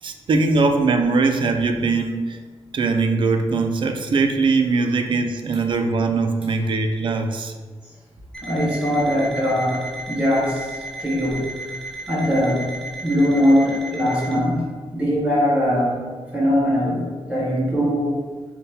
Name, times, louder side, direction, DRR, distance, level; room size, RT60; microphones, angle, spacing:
voice 1, 0.0-2.4 2.7-7.5, right 3 dB, 50° right, 5 dB, 0.3 m, -21 dB
Alarm, 8.3-14.4, right 2 dB, 5° left, 0.6 m, -35 dB
voice 2, 8.4-11.7 12.1-12.7 13.0-14.6 14.9-16.0 16.3-18.2, equal, 10° right, -5 dB, 1.0 m, -21 dB
5.3 x 2.2 x 2.7 m, 1.5 s
wide cardioid pair, 150°, 11 cm